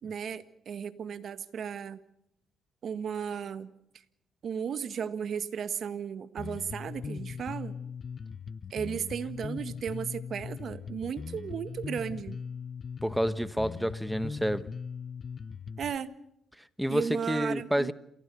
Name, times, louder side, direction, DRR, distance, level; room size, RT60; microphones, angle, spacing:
voice 1, 0.0-2.0 2.8-3.7 4.4-7.8 8.7-12.4 15.8-16.1 16.9-17.9, right 7 dB, 60° right, 1.6 m, -35 dB
Bass guitar, 6.4-16.0, left 6 dB, 45° left, 0.7 m, -40 dB
voice 2, 13.0-14.7 16.8-17.9, equal, 5° right, 1.1 m, -29 dB
28.0 x 16.5 x 6.9 m
cardioid pair, 90°, 0 cm